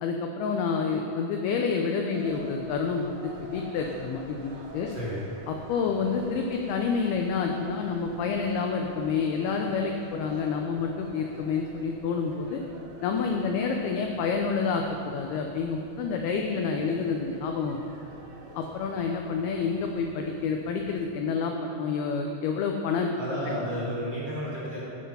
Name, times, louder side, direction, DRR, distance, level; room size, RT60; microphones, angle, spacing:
voice 1, 0.0-4.9 5.5-12.6 13.0-17.8 18.6-23.1, left 5 dB, 80° left, 3 dB, 2.3 m, -28 dB
sound 1, 2.1-21.1, right 1 dB, 85° right, 4.0 m, -49 dB
voice 2, 4.9-5.2 23.2-24.8, equal, 30° right, -8 dB, 2.4 m, -32 dB
14.5 x 7.7 x 5.5 m, 2.9 s
omnidirectional pair, 5.2 m